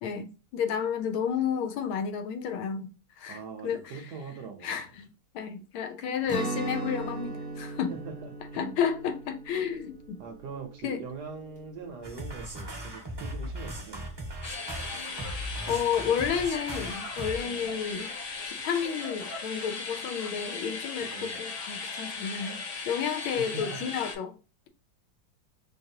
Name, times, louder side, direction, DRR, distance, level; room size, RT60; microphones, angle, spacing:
voice 1, 0.0-2.9 3.2-4.0 4.6-5.1 5.3-7.9 8.5-10.2 10.8-11.0 15.7-18.1 18.4-24.3, left 7 dB, 85° left, 1.5 m, -31 dB
voice 2, 3.3-4.9 7.9-8.8 10.2-14.1 17.4-17.7 21.0-21.4 23.4-23.9, right 5 dB, 65° right, 1.2 m, -42 dB
Guitar, 6.3-12.1, right 2 dB, 10° left, 0.9 m, -38 dB
sound 1, 12.0-17.4, right 1 dB, 20° right, 0.6 m, -38 dB
sound 2, 14.4-24.2, left 4 dB, 60° left, 1.2 m, -37 dB
4.7 x 2.6 x 2.7 m
omnidirectional pair, 2.2 m